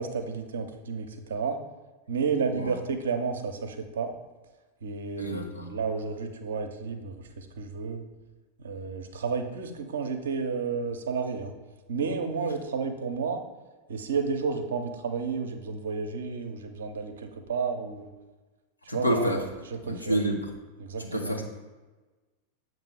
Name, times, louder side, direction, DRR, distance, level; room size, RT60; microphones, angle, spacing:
voice 1, 0.0-1.6 2.1-4.1 4.8-8.0 8.6-11.5 11.9-13.4 13.9-18.1 18.9-20.2 20.8-21.3, right 5 dB, 65° right, 6 dB, 0.6 m, -31 dB
voice 2, 5.2-5.7 18.9-19.4 19.9-20.4 21.0-21.4, equal, 85° left, 0 dB, 0.8 m, -28 dB
7.3 x 2.7 x 5.5 m, 1.2 s
figure-of-eight pair, 90°, 0 cm